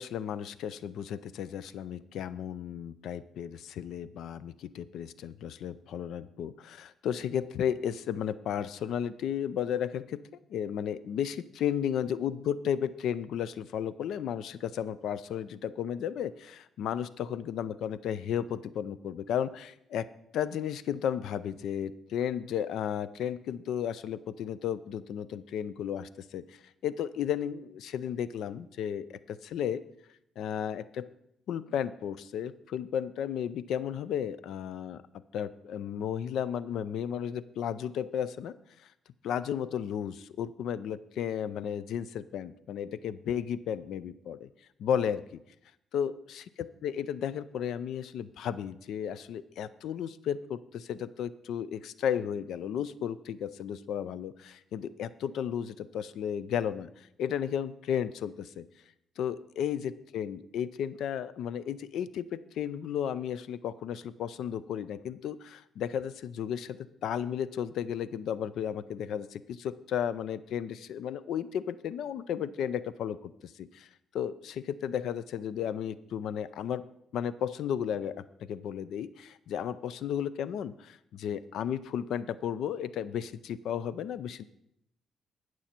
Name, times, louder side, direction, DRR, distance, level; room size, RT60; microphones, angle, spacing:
voice 1, 0.0-10.2 10.5-20.1 20.3-29.8 30.4-31.1 31.5-35.0 35.3-38.6 39.2-44.5 44.8-45.2 45.9-58.6 59.2-73.9 74.1-76.8 77.1-84.4, left 9 dB, 75° left, 16 dB, 0.4 m, -34 dB
17.5 x 6.3 x 4.4 m, 0.80 s
cardioid pair, 90°, 0 cm